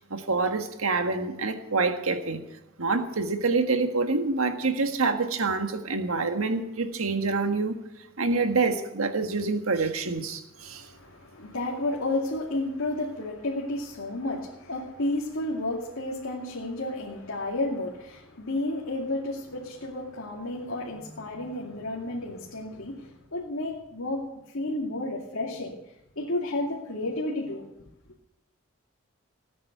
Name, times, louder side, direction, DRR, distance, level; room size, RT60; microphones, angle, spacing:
voice 1, 0.1-2.4 2.8-7.8 8.2-10.8, right 3 dB, 85° right, 6 dB, 1.6 m, -26 dB
voice 2, 10.6-25.8 26.2-27.7, left 2 dB, 75° left, -3 dB, 2.5 m, -32 dB
18.5 x 9.5 x 6.8 m, 0.87 s
head